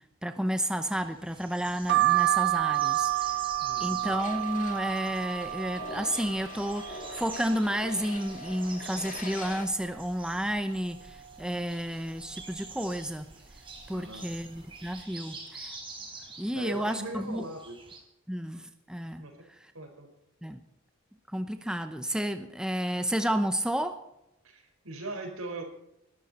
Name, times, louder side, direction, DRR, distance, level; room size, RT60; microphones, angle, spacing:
voice 1, 0.2-3.1 3.8-13.3 13.9-15.7 16.4-17.4 18.3-19.2 20.4-20.6 21.3-24.0, equal, 5° right, 8 dB, 0.8 m, -31 dB
sound 1, 0.9-18.0, right 3 dB, 25° right, 4.4 m, -46 dB
sound 2, 1.9-7.6 8.0-8.8 9.2-9.3 9.4-10.6 11.1-11.4 12.2-12.5 13.3-13.5 13.8-14.0, right 16 dB, 50° right, 1.2 m, -30 dB
voice 2, 3.6-4.0 13.9-14.3 16.5-17.8 19.2-19.4 19.7-20.1 24.4-25.6, right 2 dB, 85° right, 4 dB, 4.8 m, -40 dB
sound 3, 4.0-9.7, left 3 dB, 40° left, 1.9 m, -44 dB
20.0 x 12.5 x 4.2 m, 0.86 s
head